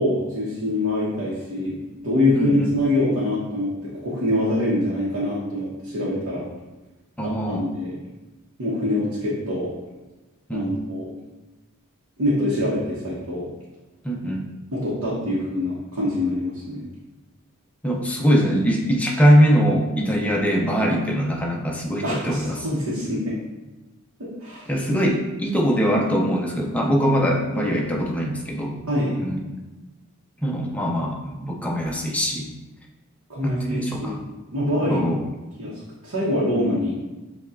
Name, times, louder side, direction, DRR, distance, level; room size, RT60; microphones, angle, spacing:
voice 1, 0.0-1.8 2.0-6.5 7.2-7.9 8.6-9.7 10.5-11.1 12.2-13.5 14.7-16.9 22.0-23.4 24.2-24.7 28.9-29.2 33.3-35.1 35.6-35.7 36.0-37.0, left 1 dB, 85° right, -7 dB, 0.9 m, -24 dB
voice 2, 2.4-2.7 7.2-7.6 10.5-10.9 14.0-14.5 17.8-22.7 24.7-28.8 29.1-29.4 30.4-32.5 33.4-34.2 34.9-35.2, equal, 5° left, 0 dB, 0.5 m, -22 dB
6.7 x 2.3 x 2.4 m, 1.1 s
head